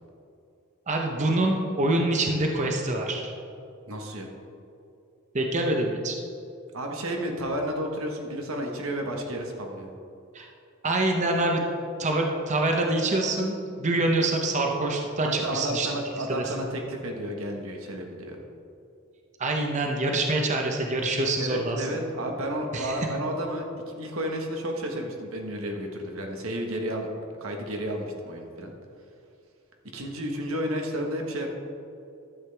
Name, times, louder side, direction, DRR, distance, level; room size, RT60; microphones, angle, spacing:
voice 1, 0.9-3.3 5.3-6.2 10.3-10.5 10.8-11.6 12.0-15.9 16.3-16.4 19.4-21.9 22.7-23.0, right 2 dB, 35° right, 1 dB, 0.8 m, -25 dB
voice 2, 3.9-4.3 6.7-9.9 15.2-18.4 21.4-27.1 27.4-28.7 29.9-31.5, equal, 90° right, 2 dB, 1.3 m, -32 dB
12.0 x 7.7 x 3.4 m, 2.6 s
head